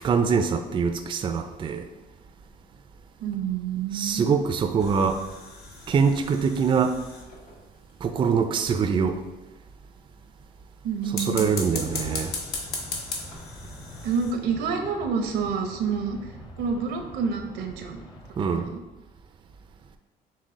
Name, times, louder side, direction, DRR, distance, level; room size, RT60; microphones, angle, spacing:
voice 1, 0.0-1.9 3.9-5.2 5.9-7.0 8.0-9.2 11.1-12.3 18.4-18.7, right 6 dB, 30° right, 7 dB, 0.3 m, -24 dB
voice 2, 3.2-4.3 10.8-11.4 14.0-16.2 16.6-18.0 18.4-18.8, right 6 dB, 85° right, 5 dB, 0.7 m, -28 dB
sound 1, 4.8-7.6 11.0-14.3, left 3 dB, 70° left, 0.9 m, -36 dB
sound 2, 11.4-18.7, left 1 dB, 25° left, 0.7 m, -45 dB
6.2 x 2.1 x 3.6 m, 1.1 s
cardioid pair, 110°, 17 cm